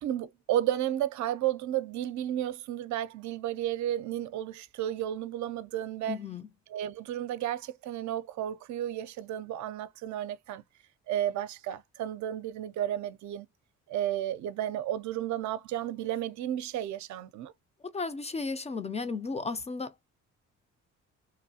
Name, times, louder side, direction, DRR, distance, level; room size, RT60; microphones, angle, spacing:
voice 1, 0.0-6.2 6.7-10.6 11.1-13.5 13.9-17.5, right 12 dB, 70° right, 0.4 m, -32 dB
voice 2, 6.1-6.5 17.9-20.1, left 4 dB, 20° left, 0.3 m, -34 dB
3.0 x 2.3 x 2.7 m
cardioid pair, 90°, 30 cm